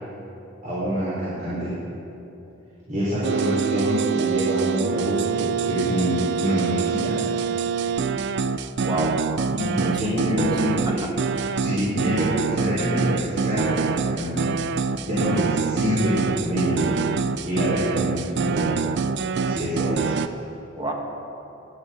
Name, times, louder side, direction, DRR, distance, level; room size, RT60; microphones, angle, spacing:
voice 1, 0.6-1.7 2.9-7.2 9.5-11.2 11.5-14.5 15.1-16.9 17.4-18.7 19.4-20.1, equal, 40° right, -9 dB, 4.0 m, -26 dB
sound 1, 3.2-20.3, right 5 dB, 60° right, 0.4 m, -25 dB
voice 2, 8.8-9.2 9.8-10.6 10.9-11.5 20.8-20.9, right 1 dB, 20° right, 1 dB, 1.6 m, -30 dB
17.5 x 11.0 x 5.1 m, 3.0 s
head